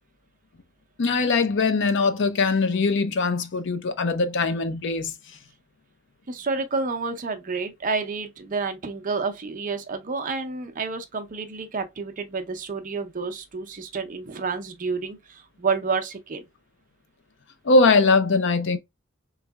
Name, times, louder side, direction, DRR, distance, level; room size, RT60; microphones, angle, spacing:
voice 1, 1.0-5.1 17.6-18.8, left 3 dB, 60° left, 0.6 m, -21 dB
voice 2, 6.3-16.4, right 4 dB, 40° right, 0.6 m, -29 dB
3.6 x 3.1 x 2.2 m
head